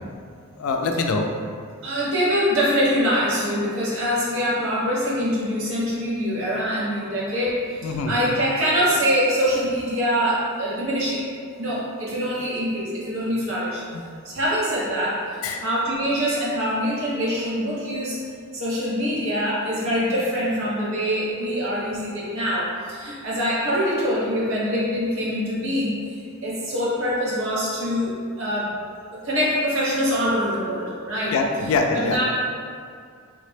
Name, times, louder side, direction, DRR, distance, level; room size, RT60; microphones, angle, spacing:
voice 1, 0.6-1.3 7.8-8.1 15.4-15.6 31.3-32.2, left 3 dB, 70° left, 3 dB, 0.3 m, -23 dB
voice 2, 1.8-11.2 11.6-13.8 14.2-18.2 18.5-28.7 29.1-31.3 31.9-32.2, equal, 70° right, -7 dB, 0.9 m, -24 dB
3.2 x 2.0 x 3.3 m, 2.2 s
head